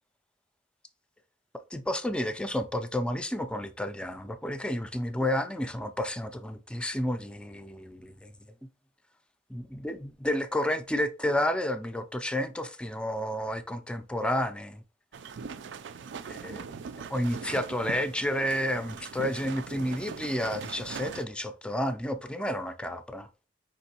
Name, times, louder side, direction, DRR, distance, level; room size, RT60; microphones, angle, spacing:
voice 1, 1.7-8.3 9.5-14.8 16.3-16.6 17.1-23.3, left 1 dB, 5° left, 0.4 m, -31 dB
sound 1, 15.1-21.2, right 5 dB, 85° right, 0.4 m, -41 dB
5.1 x 3.3 x 2.8 m
head